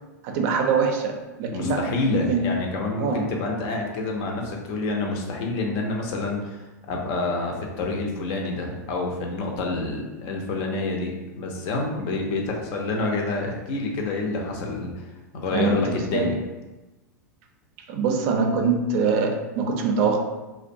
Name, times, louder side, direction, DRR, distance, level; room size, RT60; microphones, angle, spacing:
voice 1, 0.2-2.5 3.0-3.3 15.5-16.4 17.9-20.3, right 4 dB, 55° right, 4 dB, 0.4 m, -24 dB
voice 2, 1.5-6.6 6.9-14.9 15.3-16.3, left 2 dB, 50° left, 1 dB, 0.6 m, -28 dB
2.5 x 2.2 x 2.6 m, 1.1 s
hypercardioid pair, 100°, 10 cm